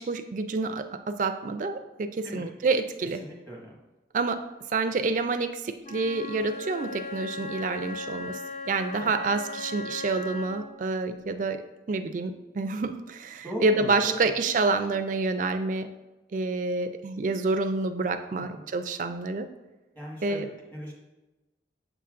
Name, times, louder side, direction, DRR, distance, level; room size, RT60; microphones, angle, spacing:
voice 1, 0.0-3.2 4.1-4.4 4.7-8.4 8.6-15.9 16.3-19.5 20.2-20.5, right 3 dB, 45° right, 9 dB, 0.4 m, -28 dB
voice 2, 3.2-3.7 9.0-9.1 13.4-14.4 18.5-18.6 19.9-20.9, equal, 10° left, -4 dB, 1.5 m, -38 dB
Wind instrument woodwind instrument, 5.8-10.8, left 3 dB, 40° left, 0.6 m, -38 dB
6.7 x 5.7 x 2.5 m, 1.1 s
head